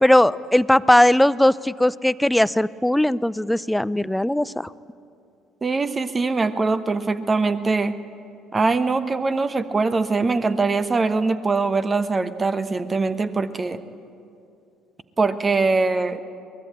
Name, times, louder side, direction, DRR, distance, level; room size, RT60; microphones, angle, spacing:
voice 1, 0.0-4.7, left 1 dB, 5° left, 18 dB, 0.5 m, -18 dB
voice 2, 5.6-8.0 8.5-13.8 15.2-16.2, right 3 dB, 25° right, 12 dB, 1.1 m, -22 dB
22.5 x 20.0 x 8.8 m, 2.6 s
figure-of-eight pair, 50°, 0 cm